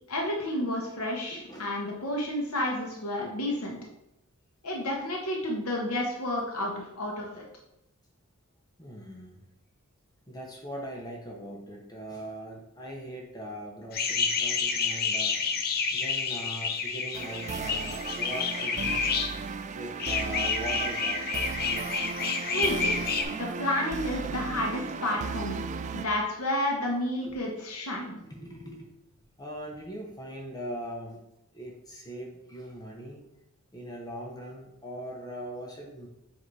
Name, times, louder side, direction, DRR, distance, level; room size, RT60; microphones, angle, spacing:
voice 1, 0.1-3.8 4.6-7.4 22.5-22.9 23.3-25.6 25.9-28.2, left 1 dB, 70° left, -1 dB, 1.2 m, -31 dB
voice 2, 1.3-1.7 8.8-9.4 10.3-15.3 15.9-19.0 19.7-21.2 23.2-23.4 24.6-24.7 27.3-27.4 28.3-28.9 29.4-31.2 31.5-33.2 33.7-36.1, right 1 dB, 20° left, -1 dB, 0.9 m, -40 dB
sound 1, 13.9-19.3 20.0-23.2, left 5 dB, 45° left, 0.6 m, -29 dB
sound 2, 17.1-26.1, right 5 dB, 35° right, 0.3 m, -35 dB
7.7 x 2.9 x 4.7 m, 0.85 s
head